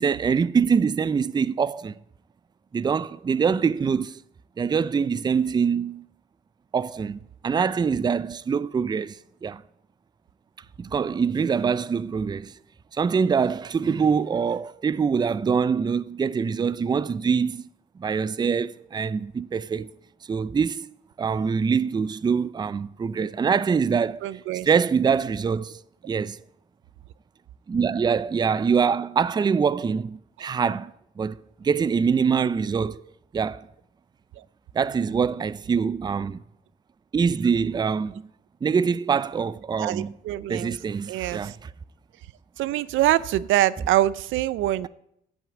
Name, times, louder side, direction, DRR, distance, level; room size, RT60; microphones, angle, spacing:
voice 1, 0.0-1.9 2.7-4.2 4.6-6.1 6.7-9.6 10.8-12.6 12.9-17.7 18.0-19.9 20.3-20.9 21.2-24.2 24.6-26.4 27.7-30.9 31.2-33.0 33.3-33.7 34.7-36.4 37.1-38.3 38.6-40.2 40.5-41.7, right 6 dB, 20° right, 0.4 m, -24 dB
voice 2, 24.2-24.7 34.4-34.5 39.8-40.8 41.1-41.6 42.6-44.9, right 14 dB, 85° right, 0.4 m, -24 dB
10.5 x 6.2 x 8.1 m
cardioid pair, 90°, 20 cm